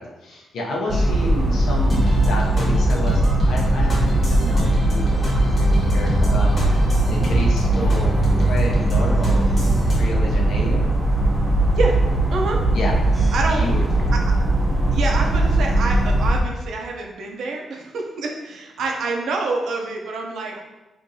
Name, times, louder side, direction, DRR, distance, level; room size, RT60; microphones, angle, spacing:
voice 1, 0.0-10.9 12.7-14.1, left 1 dB, 80° left, -2 dB, 0.8 m, -30 dB
sound 1, 0.9-16.4, right 1 dB, 15° right, 0.6 m, -19 dB
sound 2, 1.9-10.0, equal, 35° left, 1.1 m, -26 dB
voice 2, 12.3-12.6 13.3-13.6 14.1-14.2 14.9-20.6, right 3 dB, 75° right, 1 dB, 0.6 m, -26 dB
3.7 x 2.6 x 2.7 m, 1.0 s
cardioid pair, 100°, 0 cm